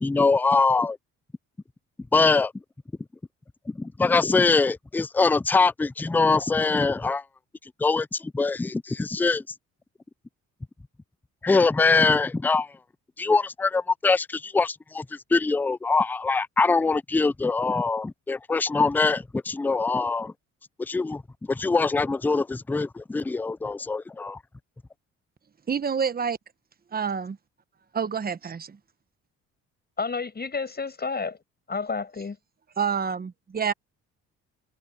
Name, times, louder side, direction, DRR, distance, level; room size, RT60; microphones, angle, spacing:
voice 1, 0.0-1.0 2.1-2.5 3.7-7.2 7.8-9.4 11.4-12.7 13.2-15.1 15.3-20.3 20.8-21.2 21.5-24.4, left 4 dB, 5° left, 0.3 m, -23 dB
voice 2, 25.7-26.4 26.9-27.4 27.9-28.8 32.8-33.7, right 6 dB, 30° right, 1.1 m, -27 dB
voice 3, 30.0-31.4 31.7-32.4, left 4 dB, 30° left, 7.8 m, -30 dB
open air
cardioid pair, 90°, 30 cm